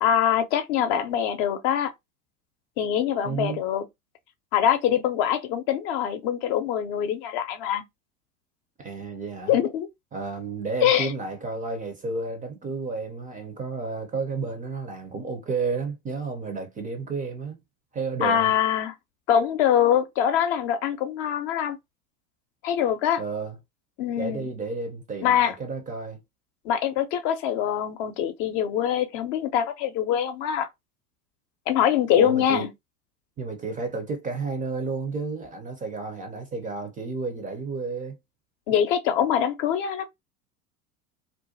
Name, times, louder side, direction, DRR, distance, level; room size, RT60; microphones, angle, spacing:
voice 1, 0.0-1.9 2.8-3.8 4.5-7.8 9.5-9.9 10.8-11.1 18.2-18.9 19.3-21.8 22.6-23.2 24.0-24.5 25.2-25.5 26.6-30.7 31.7-32.7 38.7-40.1, left 9 dB, 50° left, 0.7 m, -24 dB
voice 2, 3.2-3.6 8.8-9.6 10.1-17.6 17.9-18.5 23.2-23.6 24.2-26.2 32.1-32.6 33.4-38.2, right 4 dB, 20° right, 0.4 m, -31 dB
2.5 x 2.2 x 2.6 m
hypercardioid pair, 80°, 46 cm